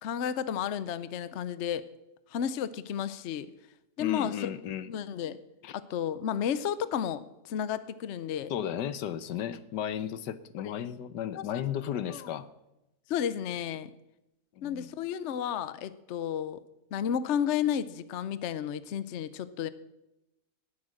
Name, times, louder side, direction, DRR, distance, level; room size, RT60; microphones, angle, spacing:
voice 1, 0.0-1.9 2.3-3.5 4.0-4.5 4.9-5.4 5.7-8.5 10.6-10.9 11.3-11.4 12.1-12.3 13.1-13.9 14.6-16.6 16.9-19.7, left 9 dB, 60° left, 15 dB, 0.8 m, -32 dB
voice 2, 4.0-4.9 5.6-5.7 8.5-12.5 14.6-14.9, left 10 dB, 75° left, 14 dB, 1.4 m, -34 dB
18.5 x 8.2 x 6.4 m, 0.92 s
omnidirectional pair, 1.9 m